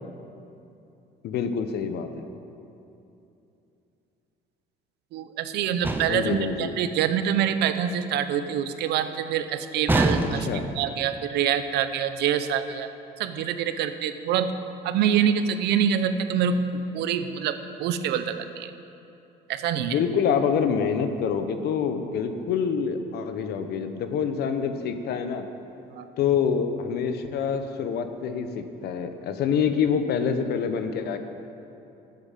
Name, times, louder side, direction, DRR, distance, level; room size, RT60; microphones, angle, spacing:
voice 1, 1.2-2.2 6.1-6.7 10.3-10.7 19.8-25.5 26.2-31.2, left 7 dB, 70° left, 8 dB, 1.0 m, -26 dB
voice 2, 5.1-10.5 10.8-12.9 13.2-14.5 14.8-18.7 19.5-20.0 25.9-26.1, right 8 dB, 80° right, 10 dB, 0.8 m, -26 dB
sound 1, 5.8-6.4 9.9-10.7, right 2 dB, 10° right, 0.8 m, -24 dB
12.0 x 7.9 x 7.5 m, 2.8 s
cardioid pair, 110°, 17 cm